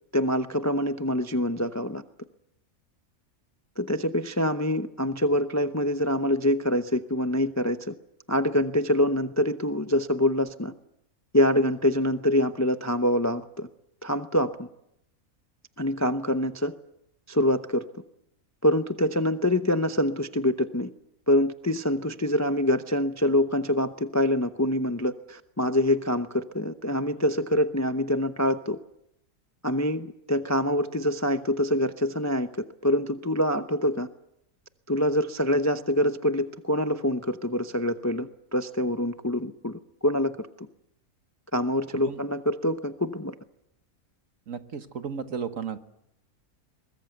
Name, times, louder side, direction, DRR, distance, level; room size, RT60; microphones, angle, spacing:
voice 1, 0.1-2.0 3.8-7.9 8.3-10.7 11.3-13.7 14.0-14.7 15.8-16.7 17.3-18.0 18.6-20.9 21.3-28.8 29.6-34.1 34.9-40.7 41.5-43.3, left 1 dB, 20° left, 9 dB, 0.5 m, -25 dB
voice 2, 44.5-45.8, right 6 dB, 60° right, 9 dB, 1.7 m, -34 dB
23.0 x 20.5 x 8.0 m, 0.81 s
omnidirectional pair, 1.6 m